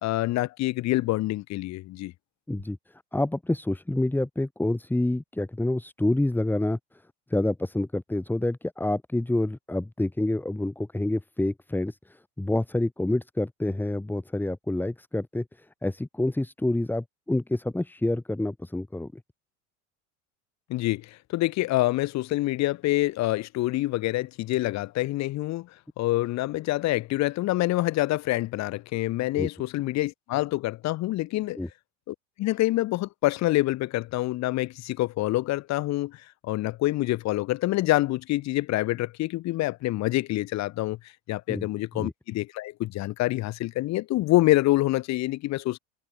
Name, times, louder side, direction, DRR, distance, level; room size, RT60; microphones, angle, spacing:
voice 1, 0.0-2.1 20.7-25.7 26.0-31.6 32.1-41.0 41.3-45.8, left 17 dB, 50° left, 3.2 m, -26 dB
voice 2, 3.1-6.8 7.3-19.2 29.3-29.5 31.6-31.7 41.5-41.7 41.9-42.1, left 1 dB, 5° left, 6.7 m, -28 dB
supercardioid pair, 125°, 35 cm